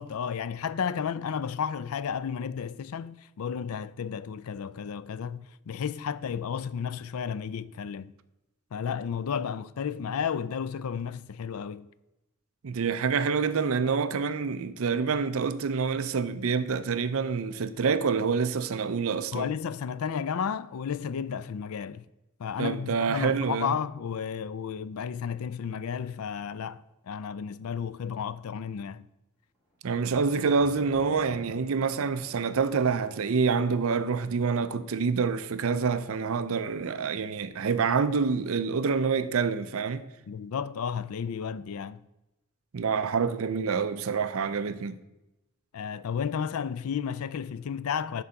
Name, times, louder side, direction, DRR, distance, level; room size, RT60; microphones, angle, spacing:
voice 1, 0.0-8.1 8.7-11.9 19.3-22.0 22.4-29.1 40.3-42.0 45.7-48.2, left 7 dB, 80° left, 0.4 m, -33 dB
voice 2, 12.6-19.5 22.6-23.7 29.8-40.0 42.7-45.0, right 5 dB, 70° right, 0.5 m, -27 dB
Thunder, 29.5-34.7 35.4-35.9 36.2-36.3, left 1 dB, 5° right, 2.3 m, -52 dB
11.0 x 3.8 x 7.0 m
head